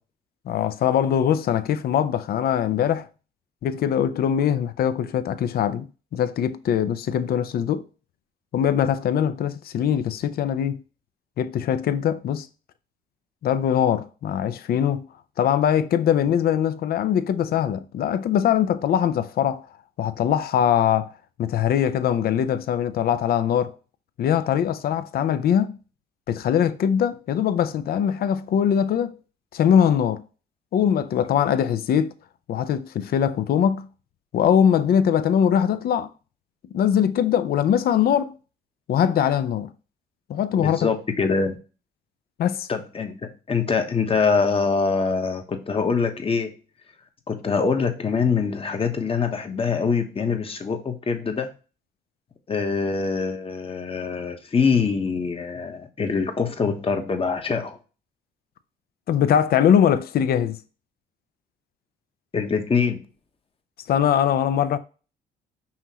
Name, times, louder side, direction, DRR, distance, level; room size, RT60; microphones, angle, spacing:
voice 1, 0.5-3.1 3.6-5.9 6.1-7.8 8.5-10.8 11.4-12.5 13.4-15.1 15.4-19.6 20.0-21.1 21.4-23.7 24.2-25.8 26.3-29.2 29.5-30.2 30.7-32.1 32.5-33.9 34.3-36.1 36.7-38.3 38.9-39.7 40.3-40.8 42.4-42.7 59.1-60.6 63.9-64.8, left 9 dB, 60° left, 0.5 m, -22 dB
voice 2, 40.6-41.6 42.7-46.5 47.3-51.5 52.5-57.8 62.3-63.0, left 5 dB, 30° left, 1.0 m, -24 dB
5.7 x 3.1 x 2.8 m
supercardioid pair, 75°, 18 cm